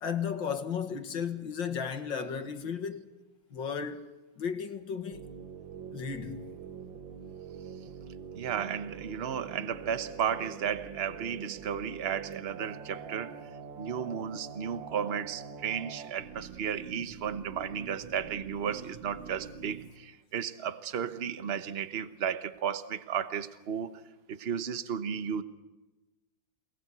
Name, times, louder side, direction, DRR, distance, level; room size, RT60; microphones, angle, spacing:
voice 1, 0.0-3.0 3.5-4.0 4.4-5.3 5.9-6.5, left 7 dB, 75° left, 2.4 m, -34 dB
sound 1, 5.1-19.9, right 6 dB, 85° right, 2.1 m, -45 dB
voice 2, 8.3-13.4 13.8-24.0 24.3-25.4, right 8 dB, 40° right, 1.0 m, -34 dB
27.5 x 19.5 x 8.2 m
omnidirectional pair, 2.1 m